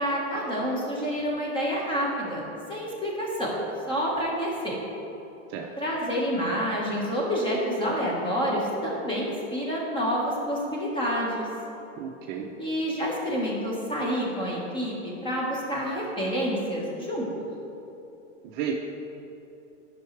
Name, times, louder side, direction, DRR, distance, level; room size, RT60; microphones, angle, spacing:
voice 1, 0.0-2.4 2.7-3.5 3.9-4.7 5.8-11.5 12.6-17.3, equal, 15° left, -3 dB, 1.5 m, -28 dB
voice 2, 12.0-12.5 18.4-18.7, right 8 dB, 40° right, 1 dB, 0.6 m, -33 dB
11.0 x 5.7 x 3.3 m, 2.8 s
supercardioid pair, 140°, 36 cm